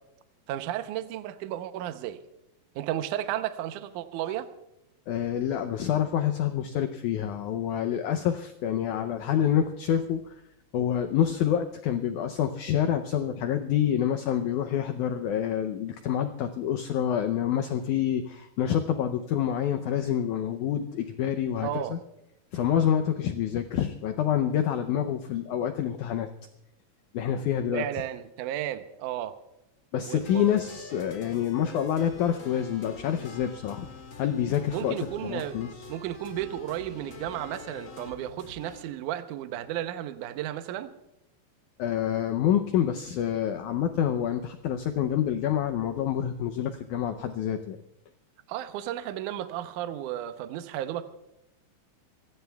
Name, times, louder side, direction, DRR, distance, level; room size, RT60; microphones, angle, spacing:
voice 1, 0.5-2.2 2.8-4.5 21.6-21.9 27.7-29.3 30.1-30.4 34.7-35.6 35.9-40.9 48.5-51.0, right 12 dB, 75° right, 9 dB, 1.9 m, -33 dB
voice 2, 5.1-10.2 10.7-22.0 22.5-26.3 27.1-27.9 29.9-33.9 34.2-35.0 35.2-35.7 41.8-47.8, left 9 dB, 90° left, 8 dB, 1.7 m, -27 dB
sound 1, 30.2-38.8, left 4 dB, 40° left, 2.3 m, -45 dB
26.5 x 17.5 x 2.3 m, 0.87 s
omnidirectional pair, 4.4 m